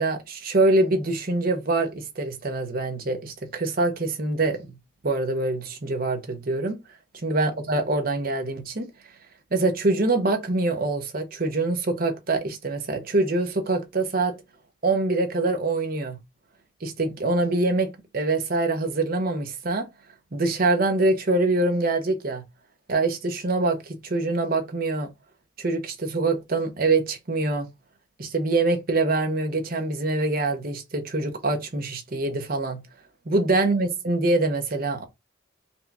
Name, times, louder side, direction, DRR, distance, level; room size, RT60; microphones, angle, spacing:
voice 1, 0.0-4.6 5.0-6.8 7.2-8.8 9.5-14.3 14.8-16.2 16.8-19.8 20.3-22.4 22.9-25.1 25.6-27.7 28.2-32.8 33.3-35.1, right 2 dB, 45° right, 0.8 m, -24 dB
4.3 x 2.3 x 4.1 m
head